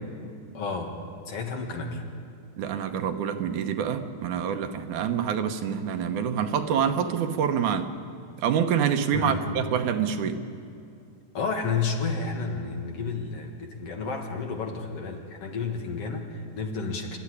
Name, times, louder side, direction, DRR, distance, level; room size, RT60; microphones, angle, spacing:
voice 1, 0.5-1.0 1.3-2.0 9.1-9.5 11.3-17.2, left 4 dB, 55° left, 2 dB, 2.6 m, -31 dB
voice 2, 2.6-7.9 8.4-10.4, right 8 dB, 85° right, 7 dB, 2.5 m, -26 dB
26.0 x 13.0 x 10.0 m, 2.4 s
omnidirectional pair, 3.4 m